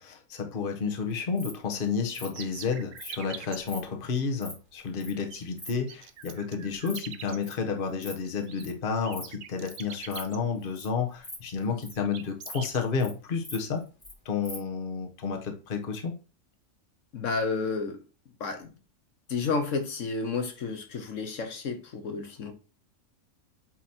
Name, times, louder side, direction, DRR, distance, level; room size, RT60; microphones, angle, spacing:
voice 1, 0.0-13.8 14.2-16.1, left 5 dB, 45° left, 1.2 m, -31 dB
Insect, 1.1-1.5 2.1-2.3 3.0-3.1 3.6-3.8 4.2-4.5 5.0-5.1 5.4-5.7 6.2-6.4 6.7-7.0 7.2-7.5 7.9-8.1 8.4-8.7 9.1-9.3 9.7-9.8 10.1-10.2 10.6-10.9 11.1-12.0 12.4-12.5 12.8-13.1 13.4-14.1 14.4-14.6, left 1 dB, 15° left, 1.7 m, -42 dB
sound 1, 2.3-3.6 5.1-5.4 5.7-7.4 8.2-8.6 9.0-10.4 11.3-11.5 11.9-12.8, right 9 dB, 65° right, 0.9 m, -43 dB
voice 2, 17.1-18.0 18.4-18.7 19.3-22.5, left 4 dB, 70° left, 1.3 m, -31 dB
8.6 x 3.1 x 4.3 m
omnidirectional pair, 1.4 m